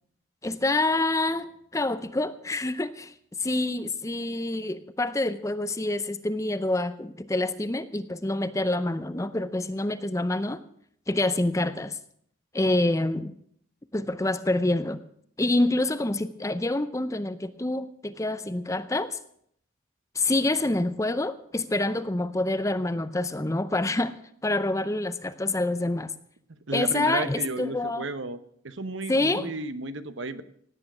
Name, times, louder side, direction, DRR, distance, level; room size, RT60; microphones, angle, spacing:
voice 1, 0.4-3.1 3.4-10.6 11.1-12.0 12.5-13.3 13.9-15.0 15.4-19.2 20.1-24.1 24.4-26.1 26.7-28.1 29.1-29.5, left 2 dB, 15° left, 13 dB, 0.5 m, -27 dB
voice 2, 26.5-28.4 28.6-30.4, right 3 dB, 65° right, 12 dB, 1.0 m, -33 dB
17.5 x 9.3 x 6.1 m, 0.66 s
head